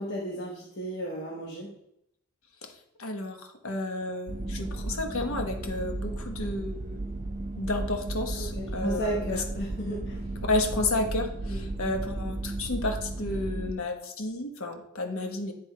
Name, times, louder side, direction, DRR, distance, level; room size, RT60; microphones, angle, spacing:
voice 1, 0.0-1.7 8.3-10.2 11.5-11.6, right 1 dB, 50° left, -3 dB, 1.2 m, -34 dB
voice 2, 3.0-7.0 7.6-9.4 10.4-15.5, left 2 dB, 75° left, 4 dB, 1.0 m, -31 dB
sound 1, 4.3-13.7, right 2 dB, 40° right, 0.8 m, -34 dB
9.4 x 3.5 x 4.5 m, 0.78 s
head